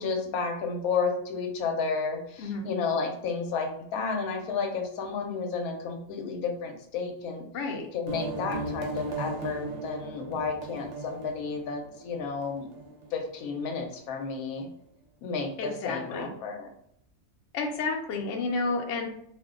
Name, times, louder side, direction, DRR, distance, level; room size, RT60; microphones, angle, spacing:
voice 1, 0.0-7.5 7.9-12.7 13.1-14.7 15.2-16.7, left 5 dB, 85° left, 3 dB, 1.0 m, -32 dB
voice 2, 7.5-7.9 15.6-16.3 17.5-19.1, left 3 dB, 65° left, 1 dB, 0.8 m, -31 dB
sound 1, 8.1-13.5, right 2 dB, 65° right, 0.9 m, -37 dB
2.5 x 2.1 x 3.5 m, 0.72 s
omnidirectional pair, 1.5 m